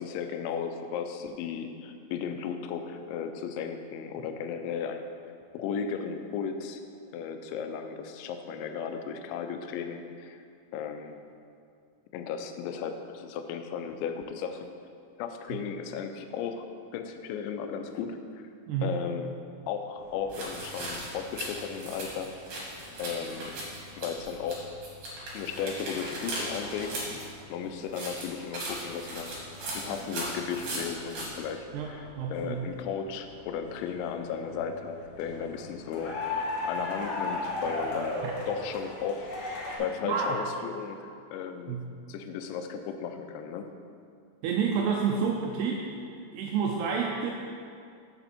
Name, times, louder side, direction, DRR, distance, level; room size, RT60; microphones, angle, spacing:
voice 1, 0.0-5.1 5.5-6.8 7.1-10.4 10.7-11.2 12.1-14.7 15.2-16.7 16.9-18.4 18.8-19.3 19.7-22.3 23.0-23.5 24.0-24.7 25.3-29.4 29.7-41.8 42.1-43.7, left 7 dB, 90° left, 7 dB, 2.9 m, -35 dB
voice 2, 18.7-19.0 31.7-32.7 38.2-38.3 40.0-40.4 41.7-41.8 44.4-45.8 46.3-47.3, right 6 dB, 85° right, 0 dB, 2.4 m, -29 dB
sound 1, 20.0-39.8, left 2 dB, 65° left, 2.7 m, -40 dB
sound 2, 20.3-24.6 24.8-27.2 27.9-31.3, right 1 dB, 60° right, 3.1 m, -38 dB
6.9 x 6.8 x 4.3 m, 2.3 s
omnidirectional pair, 5.1 m